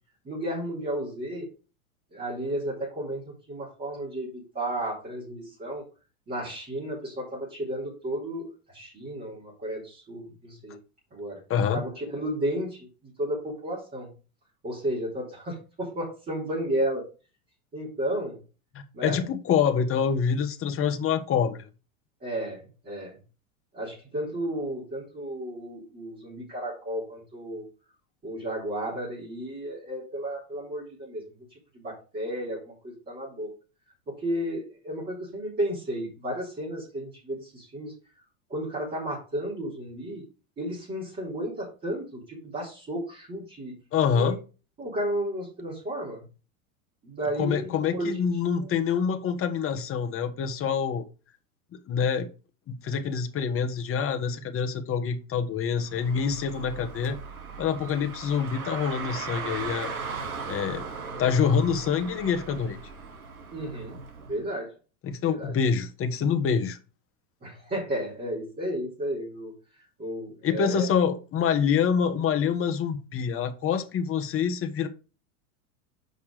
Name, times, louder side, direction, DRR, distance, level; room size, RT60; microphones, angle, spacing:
voice 1, 0.2-1.5 2.1-5.9 6.3-10.8 11.1-11.4 11.7-14.1 14.6-17.1 17.7-18.4 18.9-19.3 22.2-23.2 23.7-27.6 28.2-31.2 31.5-33.5 34.1-37.9 38.5-40.2 40.6-43.8 44.1-44.4 44.8-46.2 47.0-48.2 48.6-48.7 63.5-64.0 64.3-64.7 65.2-65.5 67.4-70.9, right 1 dB, 20° right, 4.1 m, -33 dB
voice 2, 18.7-21.7 43.9-44.4 47.4-51.0 51.9-52.3 52.8-57.2 57.6-59.9 60.5-60.9 61.2-62.8 65.0-66.8 70.4-74.9, left 7 dB, 30° left, 1.3 m, -26 dB
Car, 55.8-64.4, right 5 dB, 85° right, 2.6 m, -38 dB
6.8 x 5.1 x 4.9 m
hypercardioid pair, 100°, 42 cm